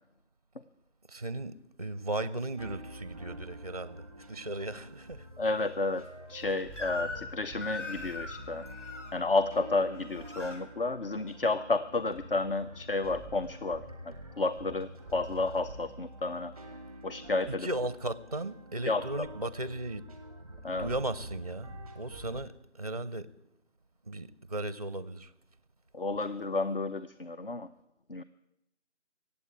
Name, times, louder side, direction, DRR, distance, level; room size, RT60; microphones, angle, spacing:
voice 1, 1.1-5.3 17.5-20.1 20.4-23.3 24.0-25.3, right 1 dB, 35° right, 0.5 m, -36 dB
sound 1, 2.6-22.4, equal, 5° left, 0.9 m, -47 dB
voice 2, 5.4-8.6 9.1-16.5 17.0-17.7 18.9-19.0 20.6-20.9 25.9-27.7 28.1-28.2, left 3 dB, 50° left, 0.6 m, -31 dB
Crying sobbing / Screech, 6.8-7.3 7.6-9.1 9.9-10.6, left 3 dB, 80° left, 3.0 m, -40 dB
16.0 x 8.3 x 9.0 m
figure-of-eight pair, 165°, 36 cm